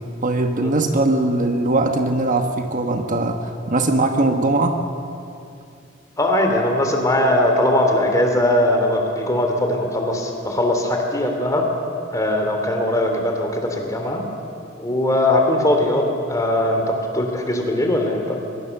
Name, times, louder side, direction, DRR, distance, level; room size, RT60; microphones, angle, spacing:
voice 1, 0.0-4.8, right 2 dB, 40° right, 5 dB, 1.3 m, -20 dB
voice 2, 6.2-11.7 12.1-14.3 14.8-18.4, left 1 dB, 15° left, 3 dB, 3.0 m, -20 dB
23.5 x 22.0 x 7.1 m, 2.6 s
head